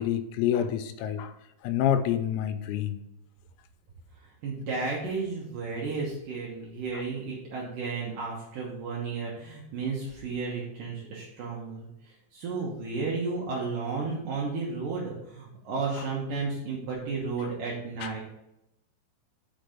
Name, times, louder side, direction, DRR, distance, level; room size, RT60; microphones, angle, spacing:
voice 1, 0.0-1.3 1.6-3.0 6.9-7.0 18.0-18.1, left 10 dB, 90° left, 9 dB, 3.4 m, -27 dB
voice 2, 4.2-18.2, right 4 dB, 85° right, -4 dB, 1.9 m, -33 dB
6.2 x 6.0 x 5.1 m, 0.85 s
omnidirectional pair, 5.9 m